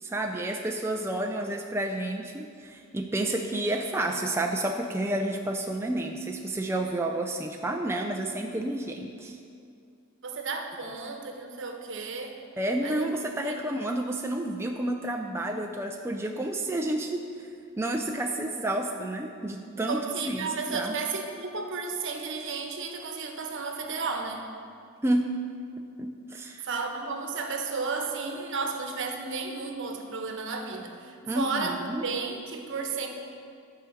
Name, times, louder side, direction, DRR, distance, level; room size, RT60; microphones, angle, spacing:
voice 1, 0.0-9.4 12.6-17.3 17.8-20.0 20.3-21.0 25.0-25.3 26.0-26.7 31.2-32.0, right 1 dB, 10° right, 2 dB, 0.4 m, -30 dB
voice 2, 10.2-12.4 12.8-13.0 13.4-13.5 19.9-24.5 26.6-33.1, right 4 dB, 60° right, 4 dB, 1.0 m, -33 dB
11.5 x 4.9 x 7.1 m, 2.4 s
head